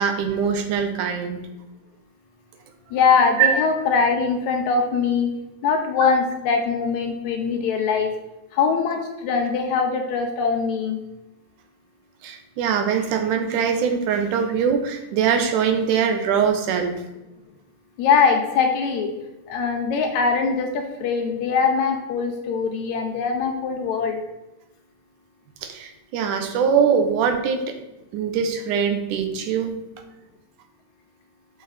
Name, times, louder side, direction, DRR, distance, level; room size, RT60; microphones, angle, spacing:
voice 1, 0.0-1.5 3.4-3.5 12.2-17.0 25.6-27.7 28.1-29.8, right 7 dB, 80° right, 5 dB, 2.2 m, -22 dB
voice 2, 2.9-5.3 5.6-8.1 8.5-11.0 18.0-19.1 19.5-24.2, left 5 dB, 75° left, 3 dB, 1.9 m, -22 dB
6.5 x 6.1 x 4.0 m, 0.96 s
omnidirectional pair, 3.7 m